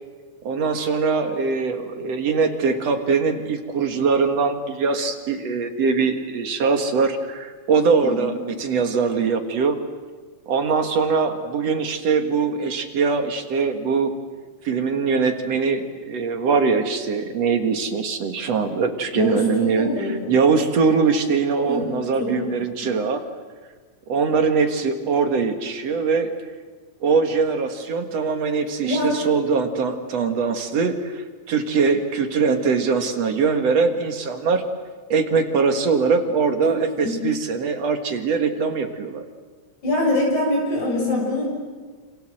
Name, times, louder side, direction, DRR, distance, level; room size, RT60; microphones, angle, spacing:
voice 1, 0.4-9.8 10.5-14.1 14.6-23.2 24.1-26.3 27.0-34.6 35.1-39.3, right 5 dB, 60° right, 6 dB, 2.8 m, -22 dB
voice 2, 8.0-8.4 19.1-20.3 21.7-21.9 22.2-22.5 28.8-29.2 36.6-36.8 37.0-37.2 39.8-41.5, left 1 dB, 75° left, -1 dB, 8.3 m, -24 dB
28.0 x 27.0 x 7.8 m, 1.4 s
omnidirectional pair, 3.5 m